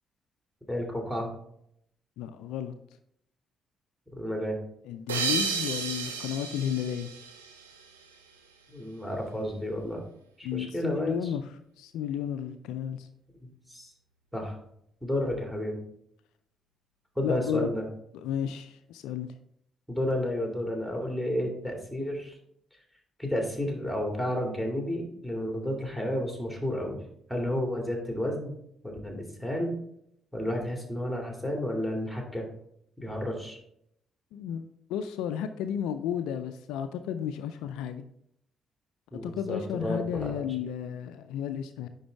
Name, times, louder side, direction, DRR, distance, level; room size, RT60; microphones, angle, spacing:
voice 1, 0.7-1.3 4.2-4.6 8.7-10.0 10.4-11.3 13.7-13.9 14.3-14.6 15.0-15.8 17.2-17.8 19.9-22.3 23.2-27.0 27.3-28.6 28.8-29.7 30.3-32.5 33.0-33.6 39.1-40.3, left 1 dB, 5° right, 1 dB, 2.5 m, -31 dB
voice 2, 2.2-2.7 4.9-7.1 10.4-11.4 11.8-13.1 17.2-17.7 18.2-19.3 34.3-38.0 39.2-41.9, left 9 dB, 70° left, 10 dB, 0.3 m, -33 dB
sound 1, 5.1-8.2, right 5 dB, 85° right, 0.6 m, -33 dB
10.0 x 4.0 x 3.4 m, 0.73 s
figure-of-eight pair, 40°, 0 cm